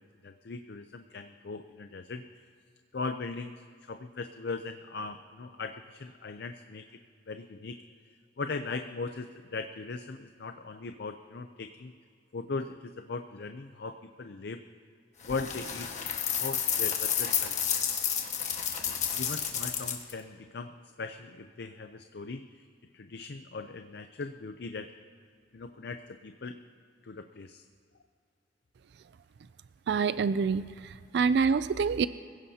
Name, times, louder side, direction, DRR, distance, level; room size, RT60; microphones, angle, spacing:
voice 1, 0.0-2.5 2.9-7.0 7.3-7.8 8.1-11.9 12.3-14.6 15.2-17.6 19.1-22.7 22.9-24.9 25.5-26.6 27.0-27.6, left 3 dB, 60° left, 8 dB, 0.5 m, -39 dB
sound 1, 15.2-20.1, left 8 dB, 40° left, 1.5 m, -31 dB
voice 2, 29.9-32.1, right 5 dB, 65° right, 14 dB, 0.3 m, -26 dB
24.5 x 16.0 x 2.8 m, 2.3 s
head